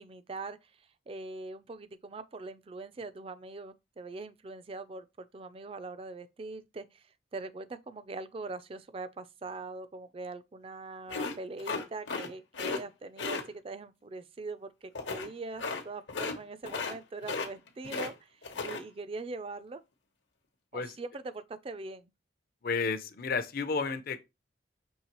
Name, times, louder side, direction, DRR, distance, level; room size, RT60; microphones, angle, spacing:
voice 1, 0.0-19.8 20.7-22.1, right 3 dB, 30° right, 0.3 m, -42 dB
sound 1, 11.1-12.3 12.5-12.8 13.2-13.4 14.9-15.3 15.6-15.8 16.1-16.4 16.6-17.0 17.2-18.1 18.4-18.8, left 4 dB, 75° left, 0.9 m, -35 dB
voice 2, 22.6-24.2, left 4 dB, 50° left, 0.5 m, -32 dB
5.4 x 3.2 x 2.9 m
head